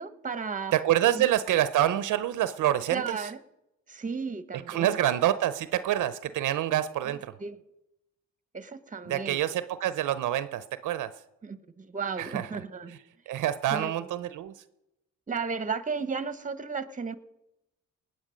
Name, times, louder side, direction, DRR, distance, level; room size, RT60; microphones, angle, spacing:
voice 1, 0.0-0.7 1.1-1.3 2.9-3.4 3.9-5.1 7.0-7.1 7.4-7.6 8.5-9.4 11.4-13.0 13.7-13.9 15.3-17.1, right 5 dB, 25° right, 13 dB, 1.1 m, -34 dB
voice 2, 0.7-3.3 4.7-7.3 9.1-11.1 12.2-12.5 13.3-14.5, right 12 dB, 70° right, 13 dB, 0.7 m, -27 dB
19.5 x 8.8 x 5.1 m, 0.90 s
supercardioid pair, 65°, 32 cm